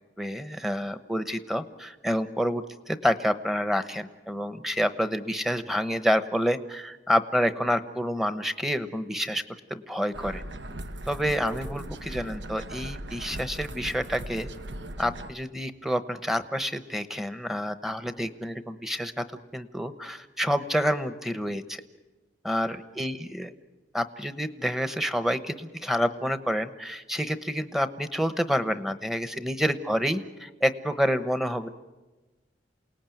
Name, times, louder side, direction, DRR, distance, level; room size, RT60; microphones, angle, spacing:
voice 1, 0.2-9.4 9.7-10.4 11.1-14.5 15.0-19.2 19.5-21.8 22.4-23.5 23.9-31.7, equal, ahead, 10 dB, 1.0 m, -28 dB
sound 1, 10.1-15.3, right 1 dB, 85° right, 1.1 m, -39 dB
28.0 x 18.5 x 9.2 m, 1.2 s
head